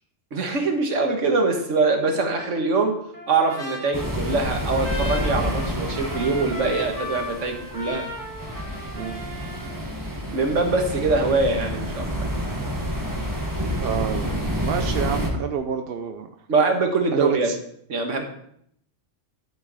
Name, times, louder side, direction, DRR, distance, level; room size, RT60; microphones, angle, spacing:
voice 1, 0.3-3.0 3.3-8.1 10.3-12.1 16.5-17.5 17.9-18.2, right 3 dB, 75° right, 4 dB, 1.7 m, -23 dB
Trumpet, 3.1-9.9, left 1 dB, 40° right, 2.0 m, -37 dB
sound 1, 3.9-15.3, equal, 15° right, 1.5 m, -29 dB
voice 2, 13.8-16.3 17.1-17.6, right 7 dB, 60° right, 7 dB, 0.7 m, -28 dB
11.5 x 6.5 x 4.0 m, 0.69 s
omnidirectional pair, 1.3 m